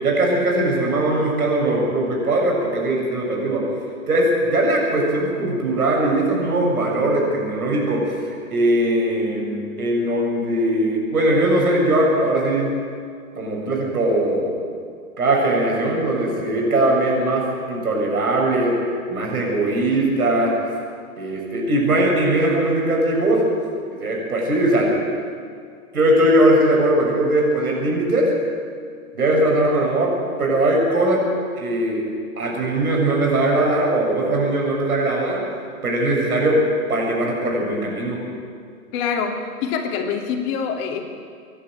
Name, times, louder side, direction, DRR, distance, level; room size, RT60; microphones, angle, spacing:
voice 1, 0.0-3.7 4.1-12.7 13.4-14.5 15.2-18.8 19.1-20.6 21.2-23.4 23.9-24.9 25.9-28.3 29.1-31.2 31.6-32.0 32.4-35.4 35.8-38.2, right 1 dB, 75° right, -1 dB, 7.1 m, -20 dB
voice 2, 38.9-41.1, left 6 dB, 40° left, 3 dB, 2.8 m, -25 dB
27.0 x 11.0 x 9.1 m, 2.2 s
hypercardioid pair, 115°, 44 cm